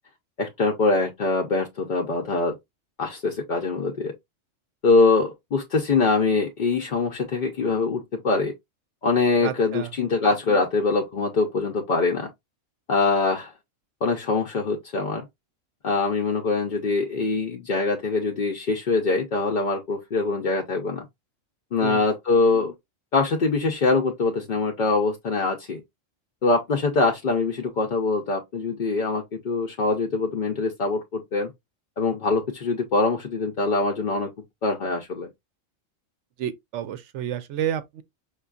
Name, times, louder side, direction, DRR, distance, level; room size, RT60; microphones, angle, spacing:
voice 1, 0.4-2.6 3.0-4.1 4.8-8.5 9.0-12.3 12.9-13.5 14.0-15.3 15.8-21.1 21.7-22.7 23.1-25.8 26.4-31.5 32.0-34.3 34.6-35.3, left 3 dB, 55° left, 0.6 m, -23 dB
voice 2, 9.4-9.9 21.8-22.0 36.4-38.0, right 10 dB, 70° right, 0.9 m, -30 dB
5.2 x 2.4 x 2.3 m
omnidirectional pair, 1.3 m